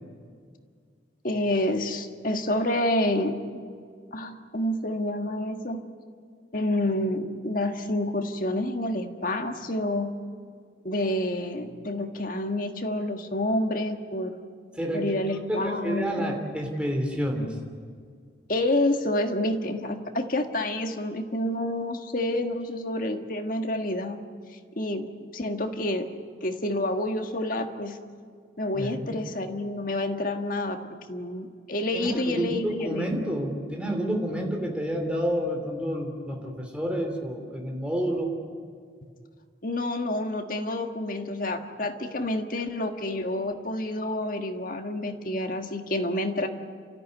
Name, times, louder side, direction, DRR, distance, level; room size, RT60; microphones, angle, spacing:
voice 1, 1.2-3.6 4.1-5.8 6.5-10.1 10.8-14.4 14.9-16.4 18.5-24.2 24.7-28.0 28.6-30.8 31.1-33.2 39.6-46.5, left 1 dB, 50° left, 5 dB, 1.6 m, -28 dB
voice 2, 15.5-17.5 28.7-29.1 31.9-38.3, equal, 5° right, 1 dB, 3.1 m, -29 dB
29.5 x 14.0 x 9.5 m, 2.1 s
head